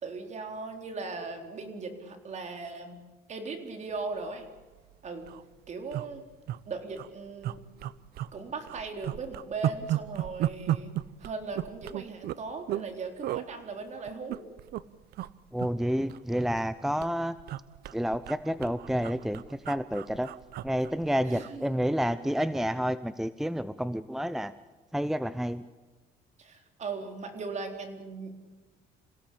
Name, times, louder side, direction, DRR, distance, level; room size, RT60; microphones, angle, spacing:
voice 1, 0.0-3.0 3.3-4.5 5.0-5.3 5.7-6.2 6.7-7.6 8.3-10.9 11.2-14.4 21.2-21.8 26.4-28.4, right 4 dB, 45° right, 5 dB, 4.1 m, -38 dB
sound 1, 4.4-4.6 4.9-5.0 5.2-5.4 5.9-6.6 6.9-7.1 7.4-8.4 8.7-12.9 13.2-13.5 14.1-14.8 15.1-15.3 15.6-16.7 17.0-21.6 21.9-22.1, right 13 dB, 70° right, 0.8 m, -34 dB
voice 2, 15.5-17.4 17.9-20.3 20.6-24.5 24.9-25.6, equal, ahead, 14 dB, 0.7 m, -29 dB
27.5 x 17.0 x 8.6 m, 1.3 s
cardioid pair, 110°, 17 cm